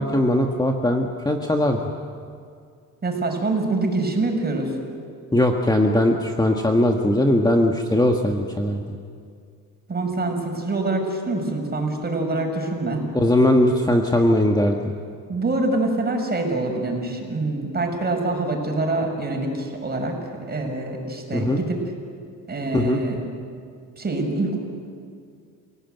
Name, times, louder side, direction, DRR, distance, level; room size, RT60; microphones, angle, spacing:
voice 1, 0.0-1.8 5.3-8.8 13.1-14.8 21.3-21.6 22.7-23.0, left 1 dB, 10° left, 2 dB, 1.6 m, -19 dB
voice 2, 3.0-4.7 9.9-13.0 15.3-20.1 20.5-21.9 22.5-23.2 24.0-24.6, right 2 dB, 25° right, 2 dB, 6.4 m, -25 dB
29.0 x 17.5 x 9.3 m, 2.3 s
cardioid pair, 100°, 35 cm